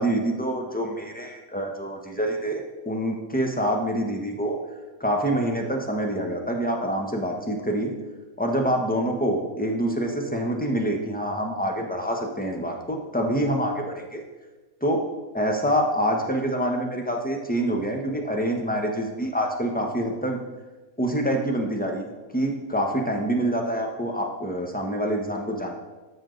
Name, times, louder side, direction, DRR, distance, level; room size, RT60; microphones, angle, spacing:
voice 1, 0.0-4.6 5.0-7.9 8.4-14.2 14.8-15.1 15.3-20.4 21.0-22.0 22.3-25.7, right 1 dB, 5° left, 2 dB, 0.9 m, -26 dB
12.5 x 6.2 x 3.9 m, 1.2 s
omnidirectional pair, 1.5 m